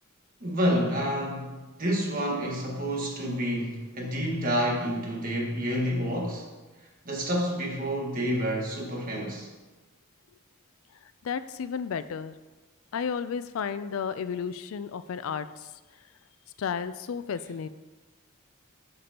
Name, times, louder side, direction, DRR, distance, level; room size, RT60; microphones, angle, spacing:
voice 1, 0.4-1.5 1.8-6.4 7.0-9.5, equal, 40° right, 0 dB, 1.5 m, -28 dB
voice 2, 11.2-12.3 12.9-15.5 16.6-17.7, left 6 dB, 75° left, 13 dB, 0.4 m, -32 dB
10.5 x 6.8 x 2.9 m, 1.2 s
head